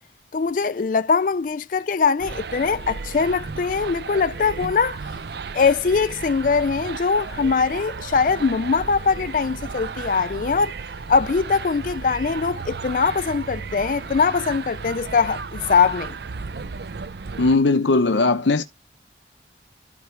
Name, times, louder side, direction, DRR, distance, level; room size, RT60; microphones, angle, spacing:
voice 1, 0.3-5.0 5.5-10.7 11.1-16.2, left 5 dB, 45° left, 0.4 m, -22 dB
sound 1, 2.2-17.6, right 4 dB, 60° right, 0.5 m, -34 dB
voice 2, 17.4-18.6, left 3 dB, 85° left, 0.8 m, -18 dB
12.5 x 4.7 x 3.2 m
head